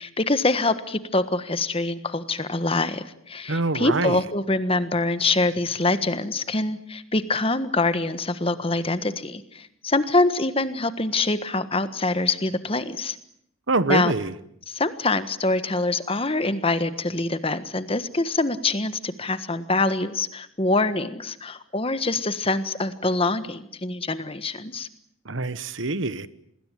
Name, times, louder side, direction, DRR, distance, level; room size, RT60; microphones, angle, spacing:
voice 1, 0.0-13.2 13.9-14.1 14.7-24.9, left 2 dB, 25° left, 12 dB, 1.4 m, -25 dB
voice 2, 3.5-4.2 13.7-14.3 25.2-26.3, right 2 dB, 65° right, 15 dB, 1.2 m, -25 dB
27.0 x 20.5 x 9.2 m, 0.72 s
head